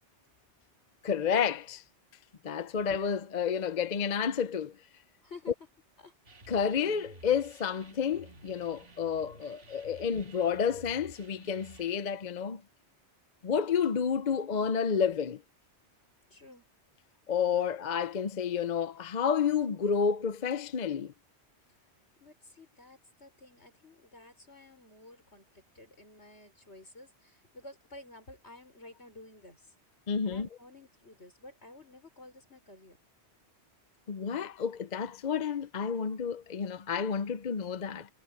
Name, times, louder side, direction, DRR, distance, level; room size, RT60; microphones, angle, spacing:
voice 1, 1.0-1.8 2.4-4.7 6.5-12.6 13.4-15.4 17.3-21.1 30.1-30.5 34.1-38.1, left 7 dB, 45° left, 0.7 m, -30 dB
voice 2, 5.2-5.5 6.0-6.1 16.3-16.7 22.2-29.7 30.2-33.0, left 2 dB, 75° left, 5.9 m, -52 dB
sound 1, 6.3-12.0, right 2 dB, 60° right, 2.3 m, -53 dB
omnidirectional pair, 1.1 m